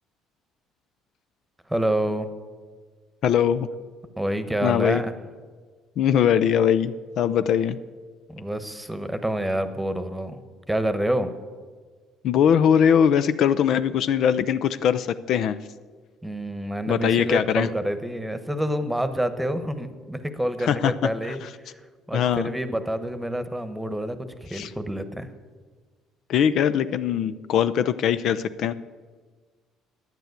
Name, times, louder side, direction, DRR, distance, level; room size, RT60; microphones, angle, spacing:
voice 1, 1.7-2.3 4.2-5.1 8.3-10.4 10.7-11.3 16.2-21.4 22.1-25.3, right 1 dB, 5° right, 10 dB, 1.1 m, -27 dB
voice 2, 3.2-3.7 4.6-5.0 6.0-7.8 12.2-15.6 16.9-17.7 20.6-21.5 22.1-22.5 24.5-24.7 26.3-28.7, left 8 dB, 65° left, 12 dB, 0.5 m, -21 dB
10.5 x 9.0 x 8.2 m, 1.5 s
supercardioid pair, 90°, 0 cm